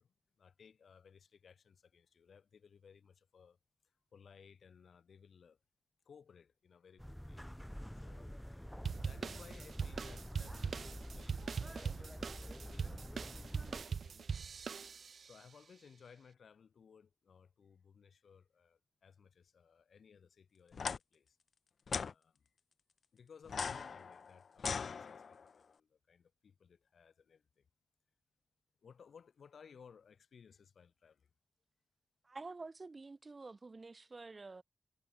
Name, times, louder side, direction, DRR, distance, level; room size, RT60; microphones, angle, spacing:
voice 1, 0.0-3.6 4.1-5.6 6.0-7.4 7.9-8.5 9.0-14.5 15.3-21.4 22.0-22.5 23.1-27.7 28.8-31.3, left 6 dB, 80° left, 6.4 m, -61 dB
sound 1, 7.0-13.8, equal, 5° left, 0.6 m, -48 dB
sound 2, 8.8-15.3, right 6 dB, 70° right, 0.7 m, -41 dB
sound 3, 20.7-21.0 21.9-22.1 23.5-25.5, left 5 dB, 65° left, 0.5 m, -39 dB
voice 2, 32.2-34.6, right 3 dB, 35° right, 0.6 m, -49 dB
wide cardioid pair, 125°, 0 cm